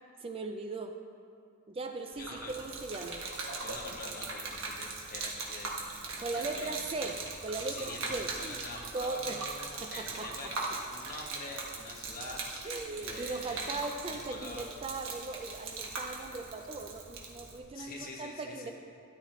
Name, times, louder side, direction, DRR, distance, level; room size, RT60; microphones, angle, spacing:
voice 1, 0.2-1.0 1.7-3.2 6.2-8.6 8.9-9.4 9.8-10.3 12.6-18.7, right 3 dB, 25° right, 5 dB, 0.4 m, -38 dB
Gurgling / Liquid, 2.1-17.6, right 3 dB, 60° right, 1.3 m, -40 dB
voice 2, 2.2-2.5 3.6-5.7 6.1-6.8 7.7-10.6 10.9-13.8 14.1-14.7 17.7-18.7, left 2 dB, 40° left, -1 dB, 1.6 m, -45 dB
13.0 x 10.5 x 3.1 m, 2.5 s
head